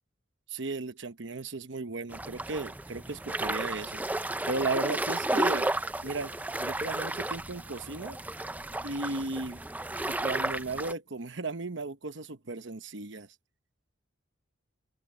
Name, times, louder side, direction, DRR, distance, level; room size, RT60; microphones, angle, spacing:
voice 1, 0.5-4.0 4.5-5.7 6.0-6.3 6.6-8.2 8.8-9.6 10.1-13.3, right 3 dB, 60° right, 1.1 m, -35 dB
sound 1, 2.1-10.9, right 2 dB, 10° right, 0.5 m, -33 dB
open air
head